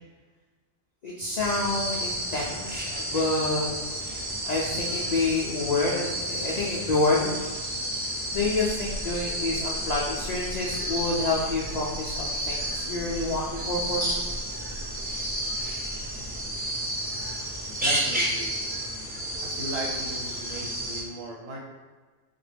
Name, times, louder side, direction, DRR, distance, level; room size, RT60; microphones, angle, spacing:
voice 1, 1.0-3.7 4.4-7.4 8.1-14.2, left 2 dB, 80° left, -4 dB, 0.3 m, -28 dB
sound 1, 1.4-21.0, equal, 15° right, 0.4 m, -31 dB
sound 2, 8.3-16.7, equal, 65° right, 0.7 m, -41 dB
voice 2, 17.6-18.6 19.4-21.6, right 1 dB, 85° right, -1 dB, 1.1 m, -37 dB
3.7 x 2.1 x 3.3 m, 1.3 s
omnidirectional pair, 1.3 m